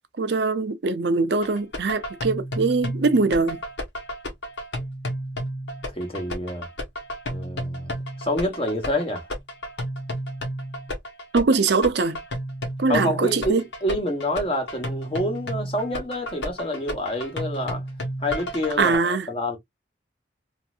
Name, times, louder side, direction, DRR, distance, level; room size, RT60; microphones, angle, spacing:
voice 1, 0.2-3.6 11.3-12.2 12.8-13.6 18.8-19.3, right 4 dB, 60° right, 0.5 m, -22 dB
sound 1, 1.4-19.0, equal, 70° left, 1.2 m, -32 dB
voice 2, 5.9-6.7 7.3-9.2 12.9-17.8 18.2-19.6, left 1 dB, 30° left, 1.1 m, -27 dB
3.1 x 2.7 x 2.3 m
head